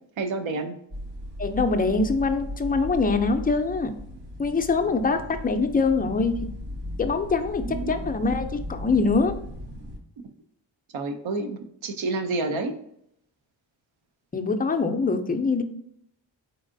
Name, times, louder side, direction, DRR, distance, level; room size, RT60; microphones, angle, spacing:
voice 1, 0.2-0.8 7.6-7.9 10.9-12.8, right 3 dB, 85° right, 7 dB, 0.6 m, -29 dB
sound 1, 0.9-10.0, left 1 dB, 65° right, 1.0 m, -36 dB
voice 2, 1.4-3.9 4.4-6.3 7.0-9.3 14.3-15.6, left 4 dB, 20° left, 7 dB, 0.3 m, -24 dB
4.4 x 4.0 x 2.5 m, 0.74 s
wide cardioid pair, 140°, 46 cm